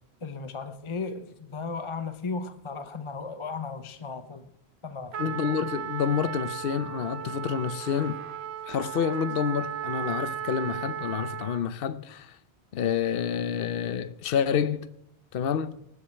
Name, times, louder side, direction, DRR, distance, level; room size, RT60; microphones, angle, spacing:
voice 1, 0.2-4.5 4.8-5.4, left 4 dB, 30° left, 0.9 m, -36 dB
Trumpet, 5.1-11.7, right 9 dB, 75° right, 1.1 m, -35 dB
voice 2, 5.2-8.2 8.7-12.4 12.7-14.9 15.3-15.8, left 8 dB, 60° left, 0.9 m, -28 dB
19.5 x 7.6 x 7.6 m
omnidirectional pair, 1.1 m